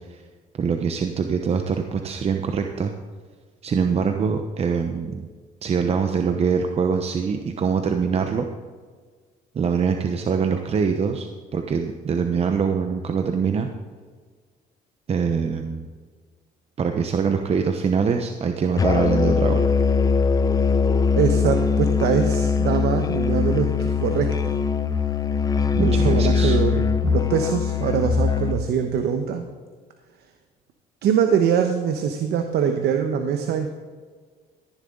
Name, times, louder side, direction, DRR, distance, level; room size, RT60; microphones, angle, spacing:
voice 1, 0.6-2.9 3.6-5.3 5.6-8.5 9.5-11.3 11.5-13.7 15.1-15.9 16.8-19.6 25.7-26.6, right 6 dB, 35° right, 5 dB, 0.9 m, -23 dB
Musical instrument, 18.8-28.6, left 5 dB, 20° left, 0.7 m, -21 dB
voice 2, 21.2-24.6 25.8-29.4 31.0-33.7, right 7 dB, 70° right, 6 dB, 1.1 m, -23 dB
14.0 x 11.0 x 3.9 m, 1.5 s
cardioid pair, 110°, 17 cm